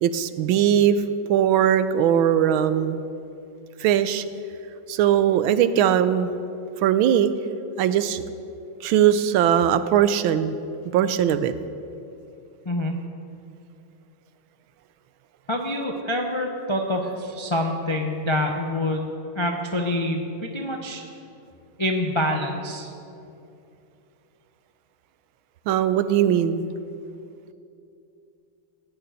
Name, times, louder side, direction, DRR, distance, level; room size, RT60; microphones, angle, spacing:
voice 1, 0.0-1.0 1.3-3.0 3.8-4.2 4.9-6.3 6.8-7.3 7.8-8.2 8.8-10.6 10.8-11.5 25.7-26.6, right 10 dB, 80° right, 12 dB, 1.4 m, -20 dB
voice 2, 15.5-19.1 19.3-21.0 21.8-22.9, left 1 dB, 40° left, 2 dB, 0.4 m, -26 dB
16.0 x 6.8 x 9.2 m, 2.7 s
omnidirectional pair, 2.3 m